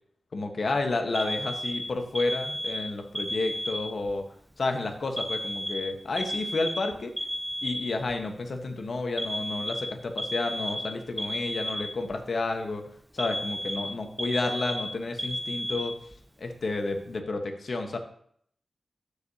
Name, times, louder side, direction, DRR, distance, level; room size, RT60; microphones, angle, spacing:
voice 1, 0.3-4.2 4.6-7.1 7.6-12.9 13.1-16.0 16.4-18.0, left 3 dB, 70° left, 4 dB, 1.2 m, -31 dB
Alarm, 1.2-4.1 5.2-8.1 9.2-12.2 13.2-16.2, equal, 10° right, 0.6 m, -33 dB
13.5 x 5.0 x 2.8 m, 0.63 s
wide cardioid pair, 70°, 0 cm